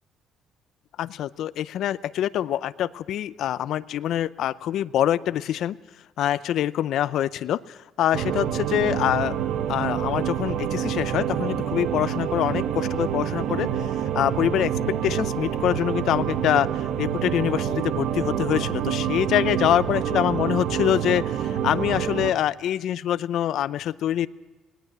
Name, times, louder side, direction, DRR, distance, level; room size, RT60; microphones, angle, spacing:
voice 1, 1.0-5.8 6.2-9.4 9.7-24.3, left 11 dB, 65° left, 16 dB, 0.6 m, -25 dB
sound 1, 8.1-22.3, right 9 dB, 75° right, 1.4 m, -27 dB
19.5 x 18.5 x 8.1 m, 1.2 s
cardioid pair, 145°, 0 cm